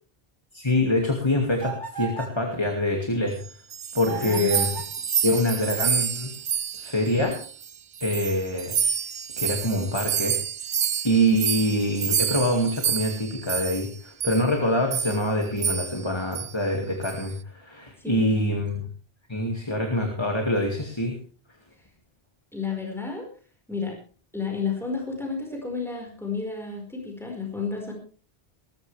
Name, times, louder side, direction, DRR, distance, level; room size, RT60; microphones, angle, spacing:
voice 1, 0.5-3.5 3.9-4.7 5.2-6.3 6.8-7.4 8.0-8.8 9.4-10.4 11.0-18.9 19.3-21.2, left 1 dB, 25° left, 2 dB, 2.3 m, -25 dB
sound 1, 1.6-2.4 4.0-5.0, right 6 dB, 20° right, 3.0 m, -35 dB
sound 2, 3.4-7.7 8.0-13.9 14.2-14.4 14.9-15.2 15.6-16.0 16.3-16.5 17.0-17.3, right 8 dB, 75° right, 1.1 m, -28 dB
voice 2, 4.1-4.5 18.0-18.2 22.5-23.3 23.7-24.0 24.3-27.9, left 5 dB, ahead, 0 dB, 5.0 m, -31 dB
20.5 x 13.5 x 3.4 m, 0.40 s
omnidirectional pair, 1.1 m